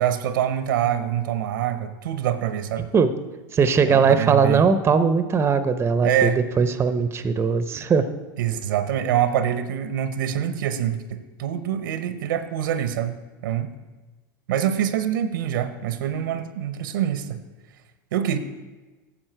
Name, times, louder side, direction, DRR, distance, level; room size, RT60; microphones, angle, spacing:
voice 1, 0.0-2.9 3.8-4.7 6.0-6.4 8.4-13.1 13.4-13.7 14.5-17.4 18.1-18.4, right 10 dB, 75° right, 11 dB, 0.7 m, -25 dB
voice 2, 3.5-8.1, right 5 dB, 25° right, 11 dB, 0.6 m, -20 dB
9.9 x 7.2 x 4.5 m, 1.2 s
hypercardioid pair, 95°, 11 cm